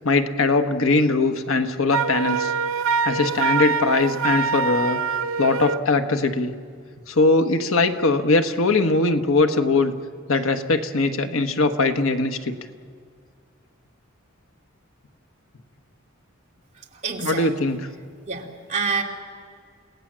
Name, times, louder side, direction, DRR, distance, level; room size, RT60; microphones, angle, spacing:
voice 1, 0.0-2.5 3.0-5.0 5.4-6.5 7.1-9.9 10.3-12.5 17.2-17.9, left 3 dB, 90° left, 7 dB, 1.3 m, -21 dB
Wind instrument woodwind instrument, 1.9-5.9, right 5 dB, 90° right, 0.7 m, -24 dB
voice 2, 16.8-17.5 18.3-19.0, right 4 dB, 35° right, -1 dB, 2.9 m, -27 dB
30.0 x 17.0 x 7.5 m, 2.1 s
head